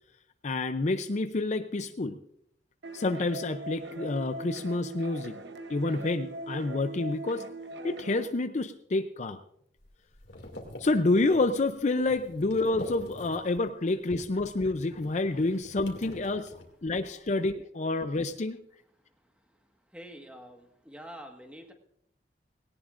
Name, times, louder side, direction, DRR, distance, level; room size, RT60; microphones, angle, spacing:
voice 1, 0.4-2.2 2.9-5.4 5.7-7.4 7.8-9.4 10.8-16.5 16.8-18.6, left 2 dB, 40° left, 9 dB, 0.5 m, -28 dB
sound 1, 2.8-8.3, right 2 dB, 70° right, 1.0 m, -41 dB
sound 2, 9.8-13.7 14.0-17.1, left 1 dB, 70° left, 2.5 m, -46 dB
voice 2, 18.9-21.7, equal, 5° right, 4 dB, 1.6 m, -48 dB
18.0 x 18.0 x 2.6 m, 0.71 s
head